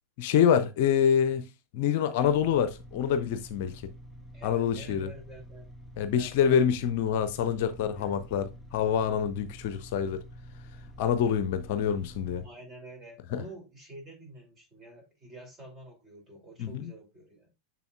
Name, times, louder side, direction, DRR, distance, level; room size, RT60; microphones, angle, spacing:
voice 1, 0.2-3.7 4.4-5.1 6.0-10.2 11.0-12.4 13.3-13.4 16.6-16.9, left 8 dB, 50° left, 0.5 m, -26 dB
sound 1, 2.2-12.5, equal, ahead, 1.0 m, -48 dB
voice 2, 4.3-5.7 6.2-7.0 7.9-8.1 12.4-17.5, right 2 dB, 25° right, 2.5 m, -48 dB
6.9 x 6.1 x 2.3 m
figure-of-eight pair, 90°, 0 cm